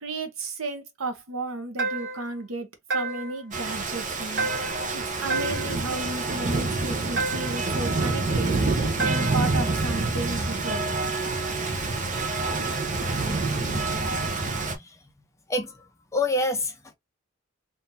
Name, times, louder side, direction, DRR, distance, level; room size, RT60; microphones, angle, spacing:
voice 1, 0.0-4.5 4.9-8.5 9.0-10.9, right 2 dB, 80° right, 1.0 m, -34 dB
sound 1, 1.8-2.3 2.9-3.4 4.4-4.9 5.3-5.8 7.2-7.7 9.0-9.5, right 3 dB, 60° right, 1.2 m, -30 dB
Rain, 3.5-14.8, right 3 dB, 40° right, 0.8 m, -27 dB
voice 2, 15.5-16.9, left 2 dB, 15° left, 0.7 m, -28 dB
3.8 x 2.7 x 2.7 m
head